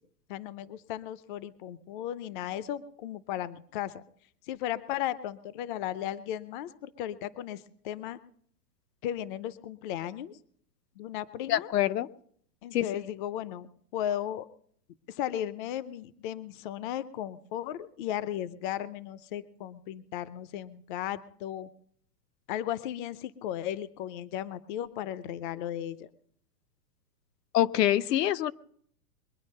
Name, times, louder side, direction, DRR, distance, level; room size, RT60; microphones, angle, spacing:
voice 1, 0.3-4.0 4.5-8.2 9.0-10.4 11.0-11.7 12.6-14.5 15.1-21.7 22.5-26.1, left 11 dB, 35° left, 16 dB, 0.5 m, -35 dB
voice 2, 11.5-12.1 12.7-12.8 27.5-28.5, left 13 dB, 80° left, 14 dB, 0.9 m, -25 dB
22.5 x 9.7 x 5.4 m, 0.63 s
supercardioid pair, 150°, 48 cm